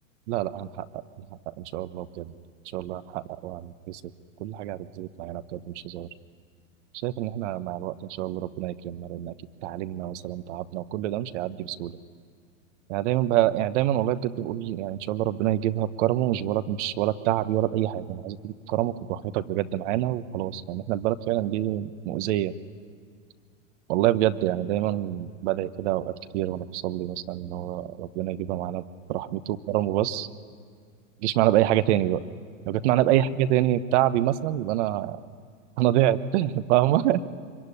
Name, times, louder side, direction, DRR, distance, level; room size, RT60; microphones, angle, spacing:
voice 1, 0.3-1.0 1.5-2.3 2.7-4.0 4.4-6.1 7.0-9.3 9.6-11.9 12.9-22.5 23.9-28.8 29.1-30.3 31.2-32.2 32.7-35.2 35.8-37.2, right 13 dB, 60° right, 13 dB, 1.3 m, -26 dB
25.0 x 23.5 x 10.0 m, 2.1 s
hypercardioid pair, 115°, 40 cm